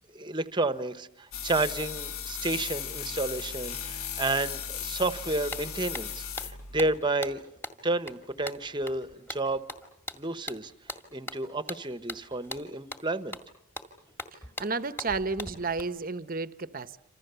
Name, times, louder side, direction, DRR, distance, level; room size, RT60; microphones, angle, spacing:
voice 1, 0.1-7.4 7.8-9.6 10.1-10.7 11.1-13.4, right 2 dB, 20° right, 11 dB, 1.1 m, -31 dB
sound 1, 1.3-7.0, left 7 dB, 75° left, 1.4 m, -36 dB
sound 2, 5.1-5.2 5.5-15.8, left 1 dB, 10° left, 2.0 m, -42 dB
voice 2, 14.3-17.0, right 4 dB, 40° right, 13 dB, 0.9 m, -32 dB
28.5 x 26.5 x 6.9 m, 0.80 s
head